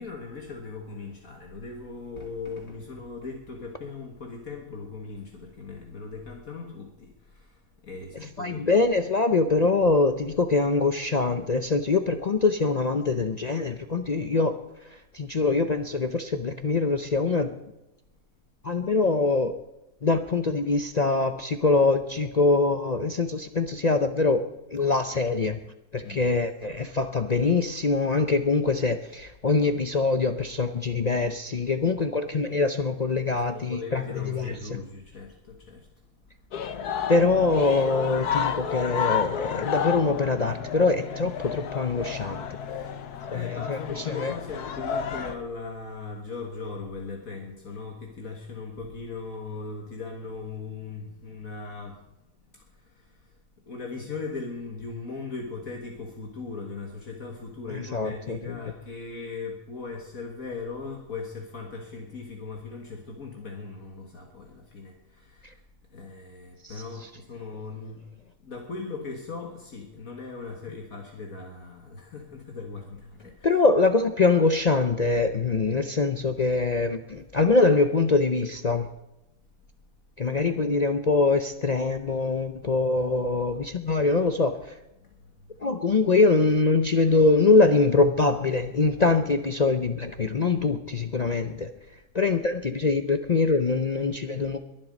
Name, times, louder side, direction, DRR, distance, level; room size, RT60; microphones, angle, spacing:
voice 1, 0.0-8.8 26.0-26.4 33.3-35.9 36.3-36.7 42.7-52.1 52.5-65.6 65.9-73.6 85.0-85.5, left 4 dB, 65° left, 2 dB, 2.1 m, -39 dB
voice 2, 8.4-14.6 14.9-17.6 18.6-19.6 20.0-24.4 24.7-25.6 25.9-34.8 37.1-42.5 43.3-44.3 57.7-58.4 66.6-66.7 73.4-78.9 80.2-84.8 85.6-91.7 92.1-94.6, left 3 dB, 50° left, 8 dB, 0.5 m, -23 dB
sound 1, 36.5-45.4, left 7 dB, 90° left, 1.5 m, -31 dB
22.5 x 7.6 x 5.3 m, 0.93 s
omnidirectional pair, 1.6 m